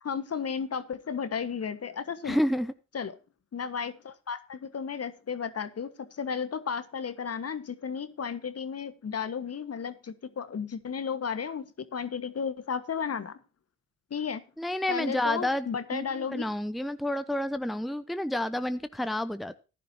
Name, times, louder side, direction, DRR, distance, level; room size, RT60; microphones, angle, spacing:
voice 1, 0.0-2.4 2.9-3.1 3.5-13.4 14.1-14.4 14.9-16.5, left 6 dB, 45° left, 12 dB, 1.5 m, -34 dB
voice 2, 2.2-2.7 14.6-19.6, left 1 dB, ahead, 12 dB, 0.8 m, -30 dB
15.0 x 11.0 x 2.8 m, 0.32 s
hypercardioid pair, 45°, 33 cm